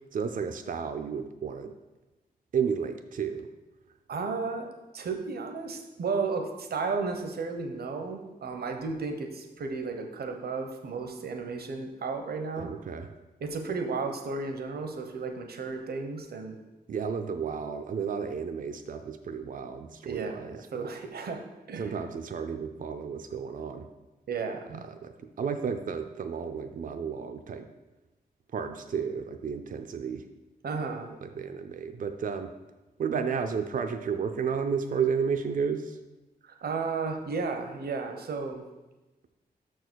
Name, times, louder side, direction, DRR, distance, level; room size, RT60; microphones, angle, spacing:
voice 1, 0.1-1.8 2.5-3.5 12.6-13.1 16.9-20.9 21.8-23.9 24.7-27.7 28.5-30.3 31.2-32.5 33.0-36.0, right 6 dB, 55° right, 7 dB, 0.5 m, -32 dB
voice 2, 4.1-12.7 13.4-16.6 20.0-21.4 21.7-21.9 24.3-24.8 30.6-31.1 36.4-38.6, right 4 dB, 80° right, 5 dB, 0.9 m, -33 dB
6.3 x 4.7 x 6.3 m, 1.1 s
wide cardioid pair, 120°, 16 cm